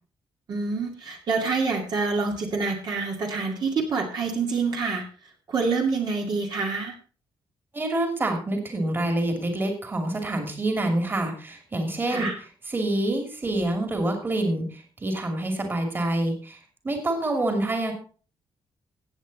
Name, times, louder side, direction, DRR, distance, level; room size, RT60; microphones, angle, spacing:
voice 1, 0.5-5.0 5.5-6.9 12.1-12.4, right 4 dB, 50° right, 1 dB, 2.3 m, -26 dB
voice 2, 7.7-12.3 12.7-17.9, right 1 dB, 20° right, 4 dB, 2.6 m, -27 dB
16.0 x 8.4 x 4.1 m, 0.39 s
wide cardioid pair, 155°, 9 cm